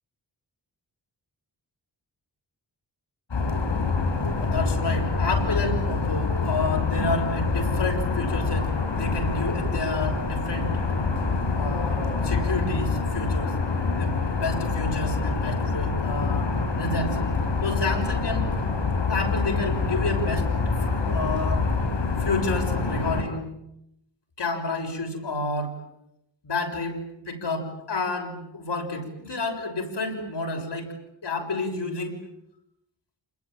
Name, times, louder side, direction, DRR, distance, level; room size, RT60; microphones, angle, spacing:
sound 1, 3.3-23.2, left 4 dB, 90° left, 7.5 m, -26 dB
voice 1, 4.4-10.7 11.6-13.5 14.0-17.2 17.6-18.5 19.1-20.5 20.8-21.6 22.2-23.5 24.4-25.8 26.4-27.0 27.3-30.9 31.2-32.2, left 2 dB, 70° left, 3 dB, 6.7 m, -30 dB
29.0 x 21.0 x 9.1 m, 0.81 s
wide cardioid pair, 100°, 43 cm